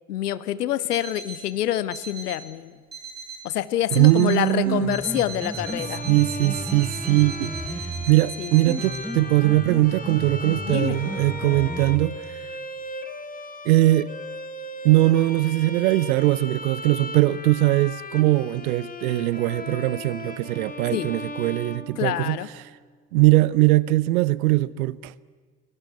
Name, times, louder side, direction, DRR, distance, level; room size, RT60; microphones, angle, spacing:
voice 1, 0.1-2.7 3.4-6.0 8.4-8.5 10.7-11.0 20.9-21.1 22.0-22.5, left 12 dB, 75° left, 1.0 m, -26 dB
Alarm, 0.9-1.5 1.9-2.5 2.9-3.5 3.9-4.5 4.9-9.0, right 5 dB, 20° right, 5.9 m, -39 dB
voice 2, 3.9-5.0 6.1-7.5 8.1-12.4 13.6-14.1 14.8-22.4 23.1-25.1, right 18 dB, 60° right, 0.8 m, -21 dB
Piano, 4.5-12.5, equal, ahead, 2.0 m, -34 dB
Bowed string instrument, 5.6-22.6, left 2 dB, 15° left, 2.2 m, -37 dB
23.0 x 20.5 x 9.5 m
figure-of-eight pair, 65°, 48 cm